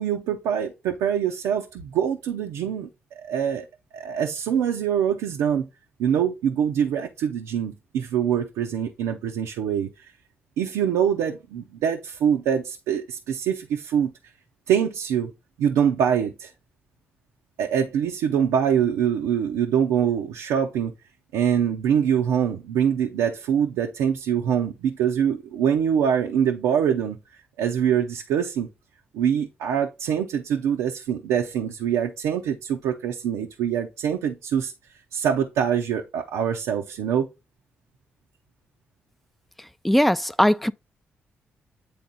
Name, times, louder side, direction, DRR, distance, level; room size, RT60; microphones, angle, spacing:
voice 1, 0.0-2.9 3.2-3.7 3.9-5.7 6.0-10.1 10.6-14.1 14.7-15.3 15.6-16.5 17.6-20.9 21.3-27.2 27.6-28.7 29.1-34.7 35.1-37.3, right 8 dB, 85° right, 0.6 m, -24 dB
voice 2, 39.8-40.7, equal, ahead, 0.4 m, -19 dB
8.6 x 3.5 x 4.0 m
supercardioid pair, 45°, 5 cm